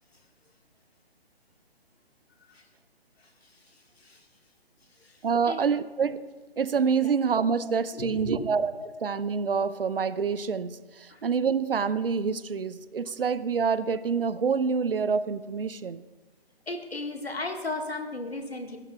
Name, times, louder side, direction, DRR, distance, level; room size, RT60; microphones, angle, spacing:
voice 1, 5.2-6.2 6.6-8.7 9.0-16.0, right 6 dB, 65° right, 15 dB, 0.6 m, -27 dB
voice 2, 8.0-8.5 11.1-11.2 16.7-18.8, left 2 dB, 80° left, 5 dB, 1.7 m, -35 dB
29.0 x 12.0 x 2.3 m, 1.2 s
figure-of-eight pair, 135°, 31 cm